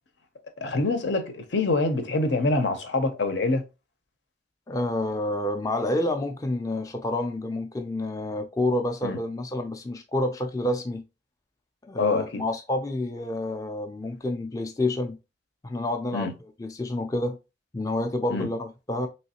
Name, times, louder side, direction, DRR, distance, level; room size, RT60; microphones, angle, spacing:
voice 1, 0.6-3.6 9.0-9.2 12.0-12.4 16.1-16.3 18.3-18.5, left 3 dB, 75° left, 0.7 m, -25 dB
voice 2, 4.7-11.0 11.9-15.2 15.6-16.3 16.6-17.4 17.7-19.1, left 1 dB, 20° left, 0.4 m, -28 dB
3.1 x 3.1 x 2.8 m
head